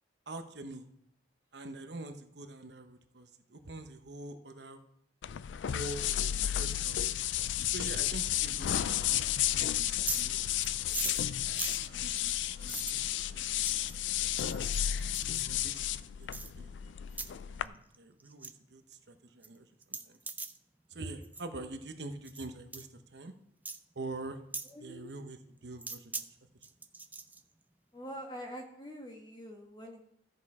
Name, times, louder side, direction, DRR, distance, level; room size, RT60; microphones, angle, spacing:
voice 1, 0.3-0.9 1.5-4.8 5.6-6.3 6.6-7.0 7.7-9.0 9.5-10.6 10.9-11.2 11.9-14.6 15.4-16.7 17.1-20.2 20.9-23.3 23.9-24.4 24.8-26.3, right 2 dB, 70° right, 7 dB, 0.9 m, -45 dB
sound 1, 5.2-17.6, left 11 dB, 90° left, 0.4 m, -32 dB
sound 2, 9.8-10.3 10.6-13.0 13.6-14.0 14.4-15.4 16.3-16.5 17.1-17.3 17.6-17.9 18.2-18.5 18.9-19.0 19.4-19.5 19.8-20.6 21.2-21.5 22.2-22.5 22.7-22.9 23.6-23.8 24.5-24.7 25.8-26.2 26.6-27.4, right 4 dB, 10° right, 0.4 m, -40 dB
voice 2, 24.7-25.1 27.9-30.0, equal, 25° left, 1 dB, 1.6 m, -45 dB
13.5 x 6.5 x 4.9 m, 0.74 s
head